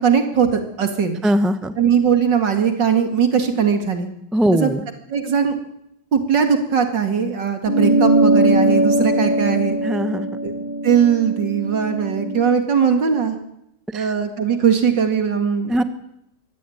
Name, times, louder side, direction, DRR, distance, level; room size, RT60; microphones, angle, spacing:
voice 1, 0.0-1.2 1.8-4.1 4.5-4.7 5.1-5.5 6.1-9.8 10.4-13.4 13.9-15.7, right 7 dB, 60° right, 6 dB, 2.9 m, -19 dB
voice 2, 1.2-1.7 4.3-4.8 9.8-10.3 13.9-14.1 15.7-15.8, equal, ahead, 10 dB, 0.7 m, -20 dB
sound 1, 7.7-12.5, right 2 dB, 30° left, 1.5 m, -20 dB
24.0 x 16.0 x 9.4 m, 0.82 s
omnidirectional pair, 2.3 m